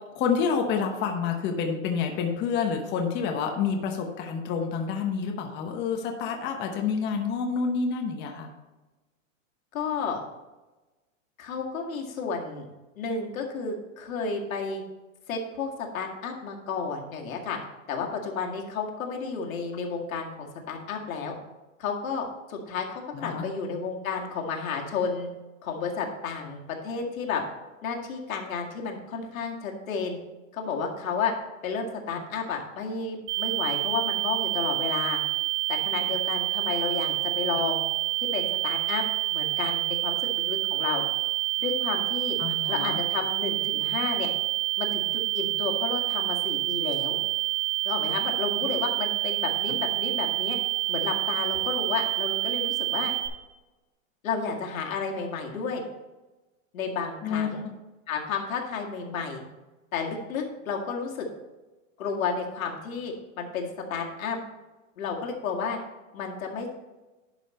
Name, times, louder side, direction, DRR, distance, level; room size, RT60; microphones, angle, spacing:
voice 1, 0.1-8.5 23.1-23.4 42.4-43.0 57.2-57.5, left 6 dB, 25° left, 3 dB, 0.9 m, -28 dB
voice 2, 9.7-10.2 11.4-12.6 13.0-14.8 15.3-17.6 17.9-21.3 21.8-25.3 25.6-27.4 27.8-30.2 30.5-31.3 31.6-35.2 35.7-37.8 38.2-39.0 39.3-41.0 41.6-42.4 42.7-44.3 44.8-47.2 47.8-50.6 50.9-53.1 54.2-55.8 56.7-57.6 58.1-59.4 59.9-61.3 62.0-64.4 65.0-65.8 66.1-66.7, left 5 dB, 85° left, 1 dB, 2.1 m, -32 dB
sound 1, 33.3-53.3, right 20 dB, 65° right, 2.3 m, -28 dB
11.0 x 5.6 x 4.2 m, 1.1 s
supercardioid pair, 150°, 40 cm